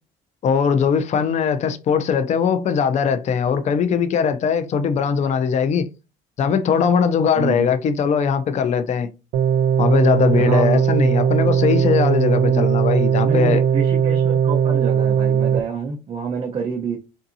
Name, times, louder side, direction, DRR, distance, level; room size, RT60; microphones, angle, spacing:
voice 1, 0.4-5.9 6.4-9.1 9.8-13.6, left 6 dB, 45° left, 0.5 m, -20 dB
voice 2, 7.3-7.7 10.3-10.8 12.4-12.6 13.2-17.0, right 5 dB, 35° right, 0.7 m, -27 dB
sound 1, 9.3-15.6, right 8 dB, 85° right, 0.4 m, -18 dB
3.5 x 2.7 x 2.6 m
cardioid pair, 110°, 17 cm